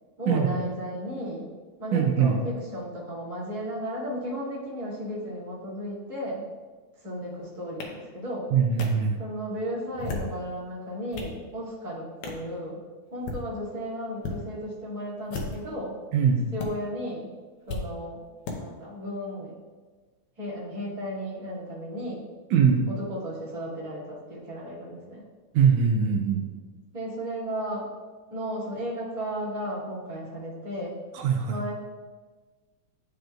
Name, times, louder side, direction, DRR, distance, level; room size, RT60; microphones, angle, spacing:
voice 1, 0.2-1.5 1.8-6.5 7.0-8.5 9.2-12.8 13.1-16.0 16.5-17.3 17.7-18.2 18.6-19.5 20.4-22.2 22.9-25.2 26.9-27.9 28.3-30.9 31.5-31.7, equal, 20° right, -9 dB, 1.6 m, -34 dB
voice 2, 1.9-2.4 8.5-9.2 16.1-16.5 22.5-22.9 25.5-26.4 31.2-31.6, right 6 dB, 80° right, 3 dB, 1.9 m, -22 dB
sound 1, 7.8-7.9 8.8-8.9 9.9-10.4 10.9-11.4 12.2-12.4 13.1-13.4 14.2-14.4 15.2-15.7 16.6-16.7 17.7-17.8 18.4-18.6, left 3 dB, 80° left, 1.3 m, -34 dB
11.5 x 5.1 x 2.3 m, 1.4 s
omnidirectional pair, 3.7 m